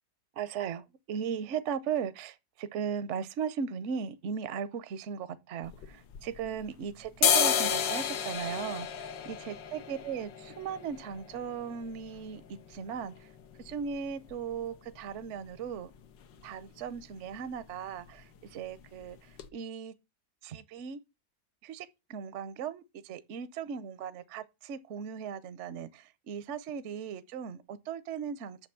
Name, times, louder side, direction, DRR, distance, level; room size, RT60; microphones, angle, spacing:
voice 1, 0.3-13.3 13.6-15.9 16.4-19.9 20.4-21.0 21.6-28.7, right 7 dB, 55° right, 0.8 m, -37 dB
sound 1, 5.6-6.7 7.0-14.8 15.1-15.2 15.4-16.0 16.3-16.5 16.8-17.0 17.3-18.0 18.4-18.5 19.0-19.1 19.4-19.5, left 8 dB, 85° left, 1.6 m, -32 dB
6.7 x 5.9 x 6.9 m
omnidirectional pair, 1.9 m